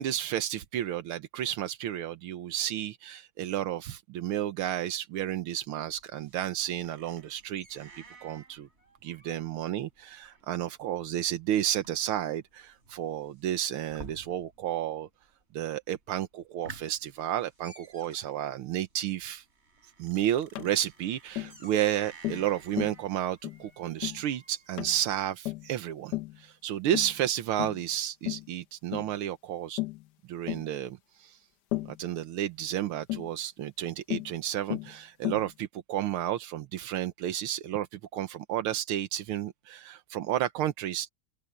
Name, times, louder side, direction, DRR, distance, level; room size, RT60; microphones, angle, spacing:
voice 1, 0.0-7.9 8.2-8.7 9.0-15.1 15.5-19.4 20.0-29.8 30.3-31.4 31.9-41.1, right 11 dB, 85° right, 1.8 m, -32 dB
sound 1, 5.4-14.7 15.0-15.6 16.0-16.1 16.4-24.7, right 3 dB, 30° right, 5.6 m, -53 dB
Tap, 20.5-20.7 21.4-21.6 22.2-22.5 22.8-23.0 23.4-23.6 24.0-24.2 24.8-25.0 25.4-25.7 26.1-26.4 26.9-27.2 27.6-27.8 28.3-28.5 28.9-29.1 29.8-30.0 30.5-30.7 31.7-32.0 33.1-33.3 34.1-34.3 34.7-34.9 35.2-35.5, left 19 dB, 70° left, 1.1 m, -34 dB
open air
omnidirectional pair, 2.3 m